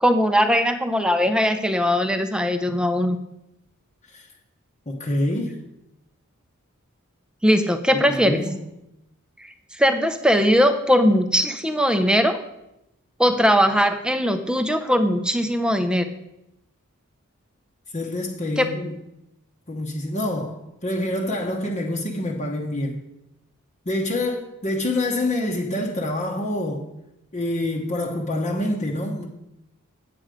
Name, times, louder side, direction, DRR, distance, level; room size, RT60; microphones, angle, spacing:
voice 1, 0.0-3.2 7.4-8.4 9.8-12.4 13.2-16.1 18.6-18.7, equal, 5° right, 0.6 m, -20 dB
voice 2, 4.9-5.6 7.9-8.6 17.9-19.0 19.7-23.0 23.8-26.8 27.3-29.3, left 1 dB, 35° left, 1.0 m, -26 dB
8.7 x 7.7 x 5.0 m
head